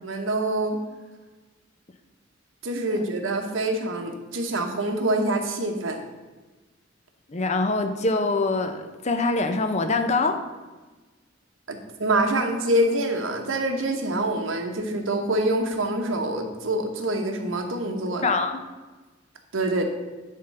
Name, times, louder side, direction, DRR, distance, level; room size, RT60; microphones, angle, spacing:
voice 1, 0.0-0.8 2.6-6.0 11.7-18.3 19.5-19.8, right 1 dB, 80° right, 4 dB, 1.1 m, -25 dB
voice 2, 7.3-10.4 18.2-18.6, left 3 dB, 35° left, 7 dB, 0.6 m, -24 dB
10.5 x 3.7 x 5.5 m, 1.2 s
head